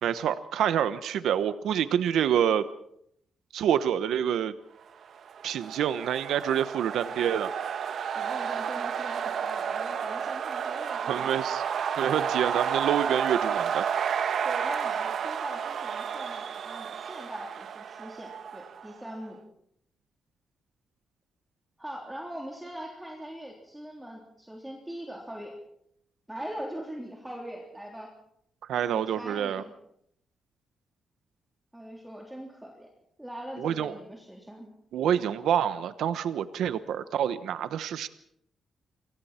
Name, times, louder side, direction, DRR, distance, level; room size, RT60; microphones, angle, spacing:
voice 1, 0.0-2.6 3.5-4.5 5.4-7.5 11.1-11.6 12.0-13.8 28.7-29.6 33.6-33.9 34.9-38.1, right 9 dB, 90° right, 12 dB, 1.0 m, -27 dB
sound 1, 5.2-19.0, right 7 dB, 60° right, 1.1 m, -31 dB
voice 2, 8.1-11.3 14.4-19.4 21.8-25.6 26.3-28.1 28.8-29.7 31.7-32.9 33.2-34.7, equal, 5° right, -1 dB, 3.5 m, -41 dB
28.5 x 23.0 x 4.4 m, 0.73 s
cardioid pair, 140°, 0 cm